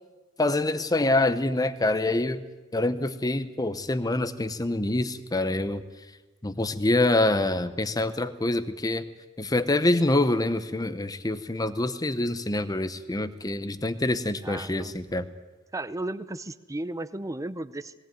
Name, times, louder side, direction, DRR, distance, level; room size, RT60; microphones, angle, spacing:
voice 1, 0.4-2.4 2.7-5.8 6.4-9.1 9.4-15.3, left 2 dB, 20° left, 13 dB, 0.8 m, -26 dB
voice 2, 14.4-15.0 15.7-17.9, right 2 dB, 15° right, 14 dB, 0.6 m, -34 dB
18.5 x 18.0 x 9.1 m, 1.2 s
head